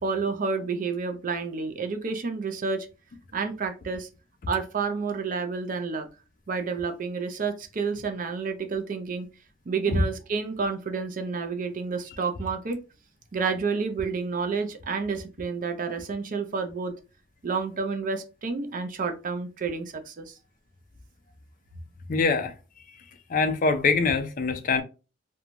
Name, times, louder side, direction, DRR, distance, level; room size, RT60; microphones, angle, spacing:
voice 1, 0.0-2.9 3.3-4.1 4.5-6.1 6.5-9.3 9.7-12.8 13.3-16.9 17.4-20.4, right 5 dB, 45° right, 0.4 m, -30 dB
voice 2, 22.1-22.5 23.3-24.8, left 4 dB, 40° left, 0.4 m, -23 dB
3.0 x 2.2 x 2.5 m
head